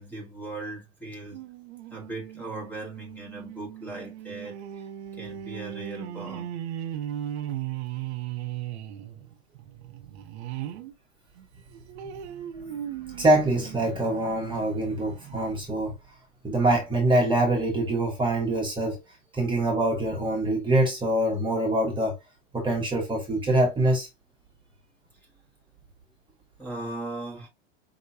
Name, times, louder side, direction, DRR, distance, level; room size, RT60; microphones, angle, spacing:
voice 1, 0.0-1.5 1.9-4.9 5.1-6.5 26.6-27.5, right 2 dB, 5° left, 1.3 m, -38 dB
sound 1, 1.3-10.9 11.4-14.4 14.9-15.0 15.3-15.4, right 11 dB, 70° right, 0.9 m, -37 dB
voice 2, 12.3-15.9 16.4-19.0 19.3-22.2 22.5-24.1, right 1 dB, 15° right, 1.3 m, -25 dB
5.4 x 3.0 x 2.7 m
supercardioid pair, 140°, 34 cm